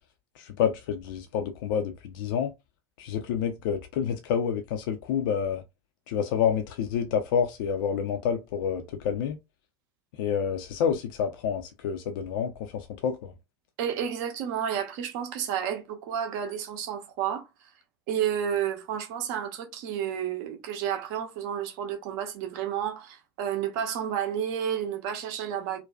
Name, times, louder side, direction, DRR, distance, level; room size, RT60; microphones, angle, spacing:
voice 1, 0.4-2.5 3.0-5.6 6.1-9.4 10.2-13.3, left 7 dB, 55° left, 0.4 m, -28 dB
voice 2, 13.8-17.5 18.1-25.8, right 9 dB, 50° right, 0.6 m, -31 dB
2.5 x 2.2 x 2.2 m
figure-of-eight pair, 75°, 13 cm